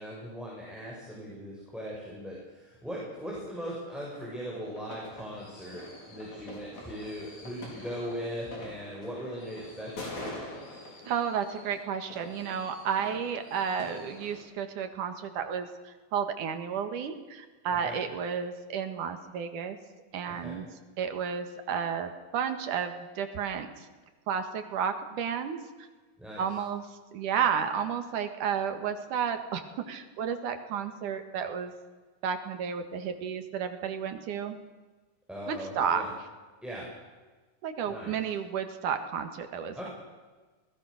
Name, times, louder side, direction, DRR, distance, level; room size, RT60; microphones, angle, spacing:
voice 1, 0.0-10.4 17.8-18.0 20.3-20.6 26.2-26.4 35.3-36.1 36.6-36.8 37.9-38.1 39.7-39.9, equal, ahead, -4 dB, 6.5 m, -39 dB
sound 1, 4.1-14.4, left 2 dB, 60° left, 6.5 m, -45 dB
voice 2, 11.1-19.8 20.1-20.7 21.0-23.7 24.3-25.6 26.4-26.8 27.1-31.7 32.2-34.6 35.5-36.0 37.6-39.9, right 7 dB, 85° right, 8 dB, 3.3 m, -32 dB
27.5 x 20.0 x 6.6 m, 1.3 s
omnidirectional pair, 3.5 m